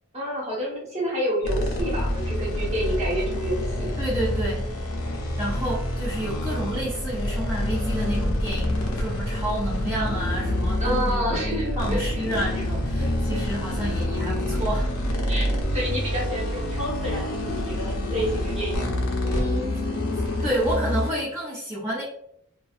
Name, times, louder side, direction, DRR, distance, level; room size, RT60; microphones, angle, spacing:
voice 1, 0.1-3.9 10.8-12.3 13.0-13.4 15.3-19.0, equal, 30° right, -5 dB, 1.1 m, -29 dB
sound 1, 1.4-21.1, left 1 dB, 75° left, 0.6 m, -27 dB
voice 2, 4.0-4.7 5.4-11.4 11.8-14.9 19.2-19.9 20.4-22.0, right 1 dB, 15° right, -10 dB, 0.6 m, -30 dB
2.6 x 2.2 x 2.4 m, 0.71 s
head